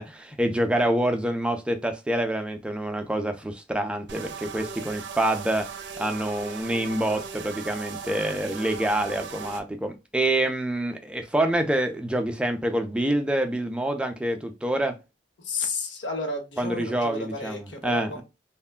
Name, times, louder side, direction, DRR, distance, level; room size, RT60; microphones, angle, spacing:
voice 1, 0.0-5.7 6.0-14.9 16.6-18.2, right 1 dB, 5° right, 0.4 m, -26 dB
sound 1, 4.1-9.6, right 6 dB, 75° right, 0.5 m, -38 dB
voice 2, 15.4-18.2, left 3 dB, 75° left, 0.9 m, -32 dB
3.3 x 2.2 x 2.3 m
head